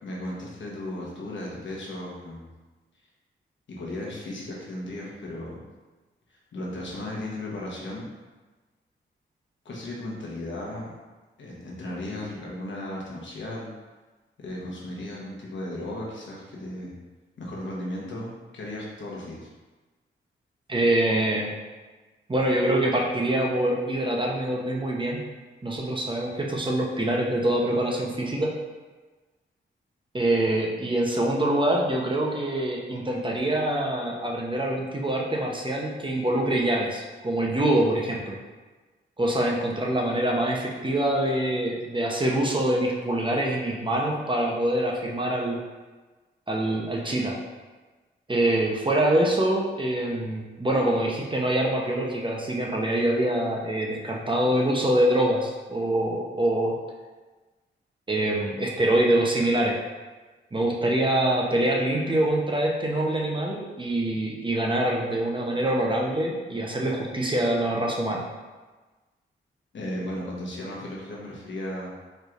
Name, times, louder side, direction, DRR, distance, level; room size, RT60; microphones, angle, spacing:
voice 1, 0.0-2.5 3.7-5.6 6.3-8.1 9.6-10.9 11.4-13.7 14.4-16.9 17.4-19.5 69.7-71.9, left 1 dB, 65° left, -3 dB, 1.1 m, -35 dB
voice 2, 20.7-21.5 22.3-25.2 25.6-28.5 30.1-38.4 39.2-45.6 46.5-47.4 48.3-56.8 58.1-59.8 60.5-68.2, right 1 dB, 25° right, -1 dB, 0.7 m, -25 dB
4.5 x 3.2 x 2.5 m, 1.3 s
cardioid pair, 55°, 21 cm